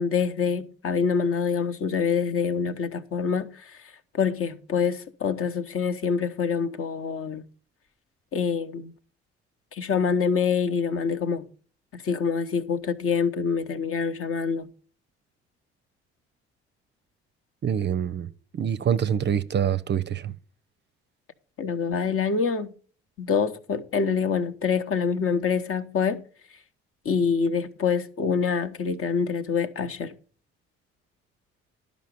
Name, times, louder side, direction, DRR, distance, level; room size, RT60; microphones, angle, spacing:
voice 1, 0.0-3.8 4.1-7.4 8.3-8.9 9.7-11.5 11.9-14.7 21.6-22.7 23.2-26.2 27.0-30.1, left 6 dB, 40° left, 1.0 m, -26 dB
voice 2, 17.6-20.3, right 8 dB, 35° right, 0.6 m, -26 dB
12.0 x 5.2 x 7.4 m
figure-of-eight pair, 45°, 33 cm